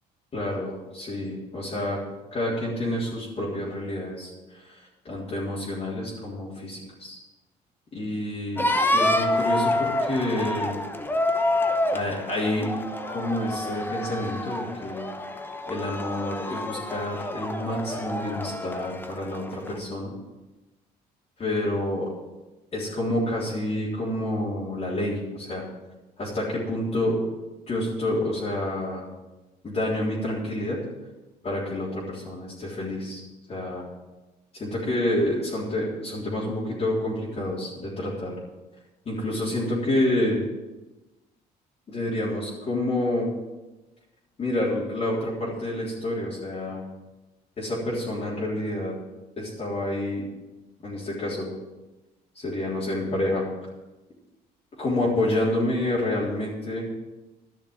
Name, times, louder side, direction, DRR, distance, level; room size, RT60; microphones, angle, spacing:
voice 1, 0.3-2.0 2.3-7.2 7.9-10.8 11.9-12.7 13.1-15.1 15.7-20.1 21.4-22.1 22.7-25.6 26.2-27.2 27.7-29.1 29.6-30.8 31.4-33.2 33.5-33.9 34.5-38.3 39.1-40.4 41.9-43.3 44.4-46.8 47.6-48.9 49.4-50.3 50.8-51.5 52.4-53.5 54.8-56.8, left 1 dB, 35° left, -6 dB, 3.6 m, -28 dB
sound 1, 8.6-19.8, left 1 dB, 10° left, 1.0 m, -28 dB
12.0 x 6.4 x 8.9 m, 1.1 s
cardioid pair, 110°, 17 cm